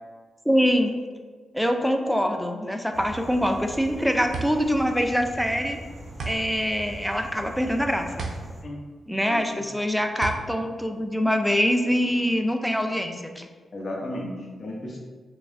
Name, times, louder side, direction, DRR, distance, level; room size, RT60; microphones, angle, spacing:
voice 1, 0.5-0.9 1.5-5.8 6.3-8.3 9.1-13.5, equal, ahead, 4 dB, 0.4 m, -24 dB
sound 1, 2.9-8.6, right 1 dB, 40° right, 0.8 m, -41 dB
sound 2, 4.3-11.8, right 4 dB, 70° right, 0.5 m, -37 dB
voice 2, 9.2-9.7 13.7-15.0, left 1 dB, 55° left, -2 dB, 0.8 m, -34 dB
3.6 x 3.0 x 2.5 m, 1.4 s
cardioid pair, 70°, 0 cm